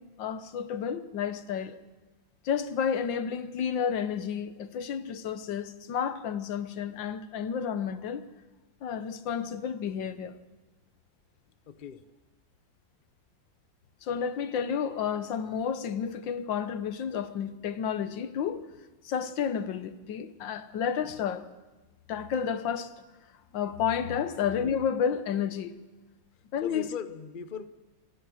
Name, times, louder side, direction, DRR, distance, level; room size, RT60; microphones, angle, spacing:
voice 1, 0.0-1.8 2.4-8.2 8.8-10.3 14.0-18.6 19.0-21.5 22.1-22.9 23.5-25.7 26.5-26.9, left 7 dB, 80° left, 1.7 m, -31 dB
voice 2, 11.7-12.0 26.6-27.7, left 7 dB, 40° left, 0.8 m, -39 dB
27.5 x 17.0 x 6.4 m
omnidirectional pair, 2.0 m